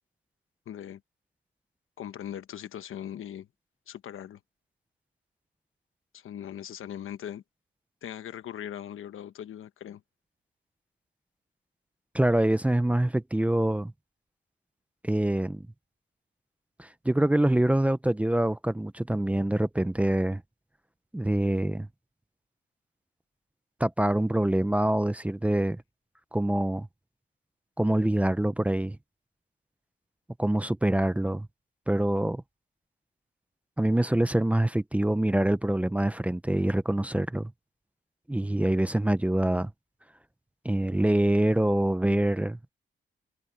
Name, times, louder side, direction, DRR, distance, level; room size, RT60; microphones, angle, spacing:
voice 1, 0.7-1.0 2.0-3.5 3.9-4.4 6.1-7.4 8.0-10.0, left 10 dB, 90° left, 1.1 m, -40 dB
voice 2, 12.1-13.9 15.0-15.7 16.8-20.4 21.1-21.9 23.8-25.8 26.3-26.9 27.8-29.0 30.4-31.5 31.9-32.4 33.8-37.5 38.3-39.7 40.6-42.7, right 1 dB, 5° right, 0.6 m, -25 dB
wide cardioid pair, 175°, 21 cm